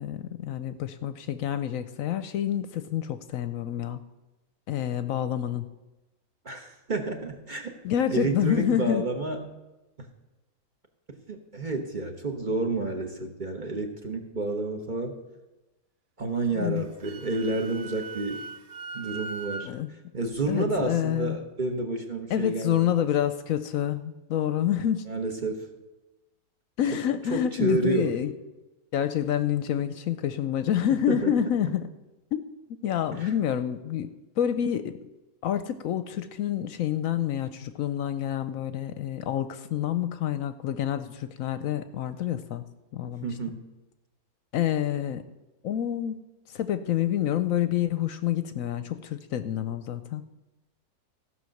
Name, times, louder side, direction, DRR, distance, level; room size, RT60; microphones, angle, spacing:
voice 1, 0.0-4.0 4.7-5.7 7.8-9.0 16.6-16.8 19.6-19.9 20.5-21.4 22.3-25.0 26.8-28.3 28.9-31.9 32.3-32.4 32.8-35.1 35.4-42.7 42.9-43.3 44.5-45.2 45.6-46.2 46.5-50.2, left 10 dB, 70° left, 11 dB, 0.9 m, -28 dB
voice 2, 6.4-7.7 8.1-9.5 11.3-15.2 16.2-18.4 18.9-19.7 20.1-22.9 25.1-25.7 26.9-27.0 27.3-28.1 30.9-31.7 33.1-33.3 43.0-43.6, right 2 dB, 35° right, 4 dB, 1.1 m, -30 dB
Wind instrument woodwind instrument, 16.8-19.7, right 4 dB, 85° right, 0.4 m, -39 dB
15.0 x 5.8 x 6.4 m, 1.0 s
omnidirectional pair, 1.6 m